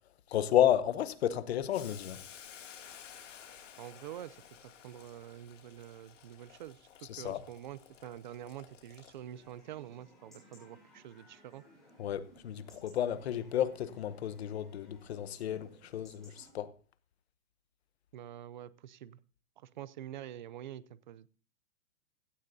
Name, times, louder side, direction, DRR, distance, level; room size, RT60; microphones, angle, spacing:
voice 1, 0.3-2.2 7.1-7.4 12.0-16.7, left 11 dB, 55° left, 1.0 m, -31 dB
Boiling, 1.7-9.5, left 8 dB, 80° left, 2.5 m, -54 dB
voice 2, 3.8-11.6 18.1-19.2 19.6-21.3, right 11 dB, 40° right, 0.5 m, -47 dB
Chatter / Livestock farm animals working animals / Chirp tweet, 9.3-16.5, left 1 dB, ahead, 6.8 m, -60 dB
16.5 x 11.5 x 2.7 m
hypercardioid pair, 170°, 37 cm